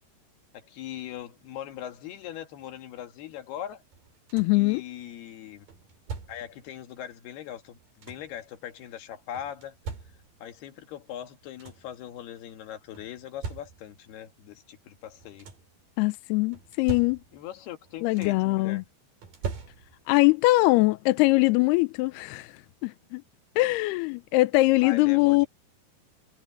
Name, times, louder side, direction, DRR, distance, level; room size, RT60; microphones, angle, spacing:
voice 1, 0.5-3.8 4.5-5.7 6.3-9.8 10.4-15.5 17.3-18.8 24.8-25.5, left 10 dB, 65° left, 3.7 m, -40 dB
sound 1, 3.9-4.7 5.7-6.6 7.6-8.4 9.4-10.6 11.1-11.2 11.4-12.0 13.0-14.1 15.1-15.8 16.5-17.6 17.8-18.6 19.2-20.2 21.5-21.6 22.1-22.3, right 5 dB, 50° right, 5.2 m, -41 dB
voice 2, 4.3-4.8 16.0-17.2 18.0-18.8 20.1-22.5 22.8-23.2 23.6-25.5, left 22 dB, 85° left, 2.4 m, -22 dB
omnidirectional pair, 5.1 m